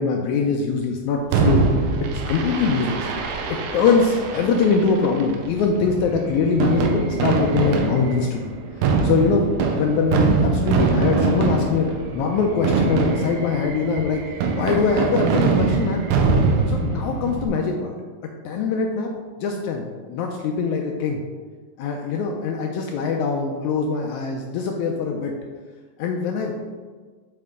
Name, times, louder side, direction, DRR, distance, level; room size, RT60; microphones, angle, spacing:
voice 1, 0.0-1.7 2.3-8.5 9.0-9.5 9.7-11.9 12.1-14.2 14.5-16.1 16.7-17.9 18.4-19.1 19.4-21.2 21.8-25.3 26.0-26.5, left 5 dB, 85° left, 2 dB, 1.7 m, -22 dB
Fireworks, 1.3-17.5, right 4 dB, 75° right, 1.9 m, -23 dB
7.8 x 4.7 x 3.6 m, 1.5 s
omnidirectional pair, 3.9 m